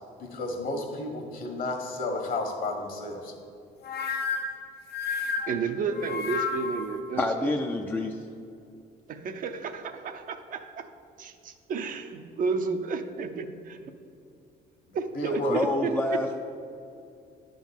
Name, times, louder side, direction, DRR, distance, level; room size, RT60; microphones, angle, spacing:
voice 1, 0.2-3.3 15.1-15.6, left 2 dB, 55° left, 3 dB, 1.5 m, -31 dB
sound 1, 3.8-6.9, left 5 dB, 75° left, 0.8 m, -31 dB
voice 2, 5.5-7.5 9.1-10.9 11.2-13.9 14.9-16.2, right 5 dB, 55° right, 7 dB, 0.7 m, -32 dB
voice 3, 7.2-8.2 15.5-16.4, left 2 dB, 10° left, 3 dB, 0.4 m, -27 dB
9.8 x 3.9 x 7.1 m, 2.5 s
cardioid pair, 110°, 17 cm